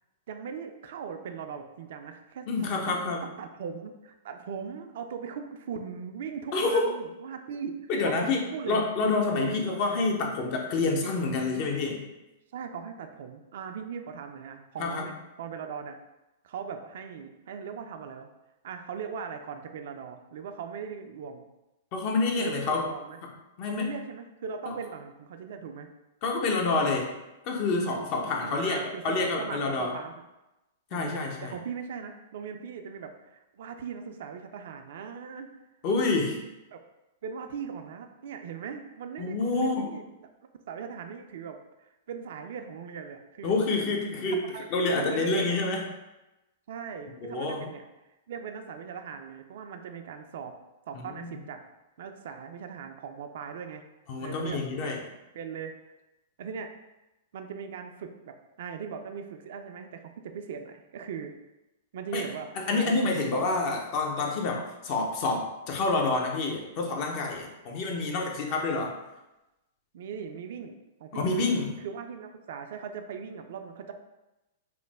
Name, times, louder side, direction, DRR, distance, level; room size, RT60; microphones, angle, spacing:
voice 1, 0.3-2.9 3.2-10.0 12.5-16.0 16.4-18.3 18.6-21.4 22.4-23.2 23.7-25.9 28.4-30.1 30.9-35.5 36.7-36.8 37.2-40.1 40.7-43.5 44.4-45.6 46.7-47.8 48.3-50.5 50.9-51.6 52.0-53.8 54.2-54.9 55.3-55.7 56.4-56.7 57.3-61.3 61.9-63.5 69.9-70.7 71.0-71.4 71.8-73.9, right 6 dB, 60° right, 6 dB, 0.3 m, -39 dB
voice 2, 2.5-3.2 6.5-6.9 7.9-8.4 8.7-12.1 14.8-15.0 21.9-22.8 23.6-23.9 24.7-24.8 26.2-27.1 27.5-29.9 30.9-31.6 35.8-36.4 39.2-39.9 43.4-44.4 44.7-45.8 47.2-47.6 50.9-51.3 54.1-55.0 62.1-62.2 62.6-68.9 71.1-71.7, left 3 dB, 45° left, 1 dB, 0.6 m, -28 dB
3.1 x 2.1 x 3.3 m, 0.99 s
hypercardioid pair, 110°, 0 cm